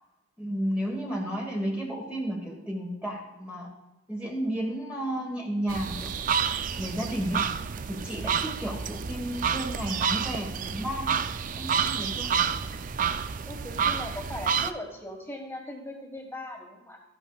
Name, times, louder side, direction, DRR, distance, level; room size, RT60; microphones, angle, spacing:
voice 1, 0.4-3.7 4.1-6.4 6.8-7.4 7.9-11.2 11.6-12.3, equal, 5° right, -1 dB, 1.3 m, -32 dB
sound 1, 5.7-14.7, right 7 dB, 40° right, 0.4 m, -29 dB
voice 2, 13.4-17.0, left 1 dB, 10° left, 1 dB, 1.4 m, -39 dB
13.0 x 11.0 x 2.3 m, 1.0 s
head